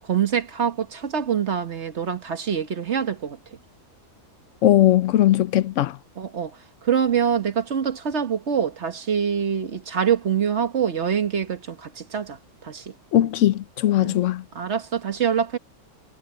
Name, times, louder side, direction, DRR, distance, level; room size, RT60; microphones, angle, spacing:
voice 1, 0.0-3.6 6.2-12.9 14.0-14.2 14.5-15.6, right 8 dB, 50° right, 1.5 m, -25 dB
voice 2, 4.6-6.0 13.1-14.4, left 13 dB, 65° left, 0.8 m, -19 dB
omnidirectional pair, 1.6 m